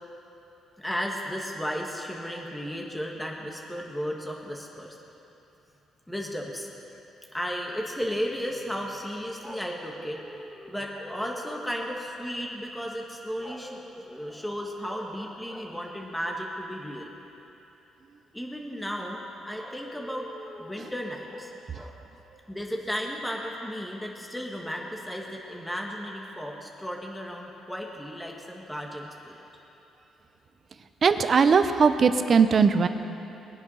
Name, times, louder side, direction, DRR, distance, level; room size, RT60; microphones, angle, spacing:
voice 1, 0.8-5.0 6.1-6.7 7.3-17.1 18.3-19.2 19.4-22.0 22.5-29.4, equal, 5° left, -1 dB, 1.7 m, -34 dB
voice 2, 31.0-32.9, right 5 dB, 45° right, 10 dB, 0.8 m, -19 dB
21.5 x 8.2 x 5.7 m, 3.0 s
cardioid pair, 90°, 0 cm